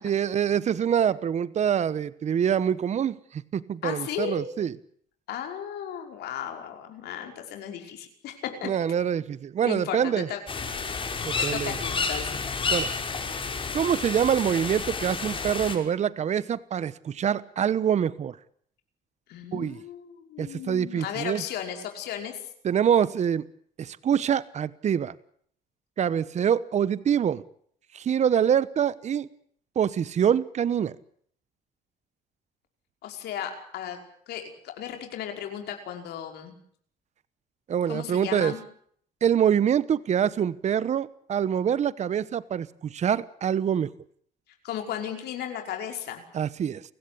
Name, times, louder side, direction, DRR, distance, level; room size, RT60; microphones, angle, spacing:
voice 1, 0.0-4.7 8.6-10.3 11.2-11.8 12.7-12.9 13.7-18.4 19.5-19.8 20.4-21.4 22.6-23.5 23.8-25.1 26.0-27.4 27.9-29.3 29.7-30.9 37.7-38.5 39.2-43.9 46.3-46.8, right 8 dB, 45° right, 17 dB, 1.1 m, -25 dB
voice 2, 3.8-4.4 5.3-8.7 9.6-10.7 11.4-12.4 19.3-22.4 33.0-34.0 34.3-36.6 37.9-38.6 44.6-46.2, left 9 dB, 75° left, 4 dB, 5.4 m, -35 dB
sound 1, 10.5-15.8, left 4 dB, 30° left, 5.6 m, -30 dB
30.0 x 16.0 x 8.7 m, 0.63 s
cardioid pair, 110°, 17 cm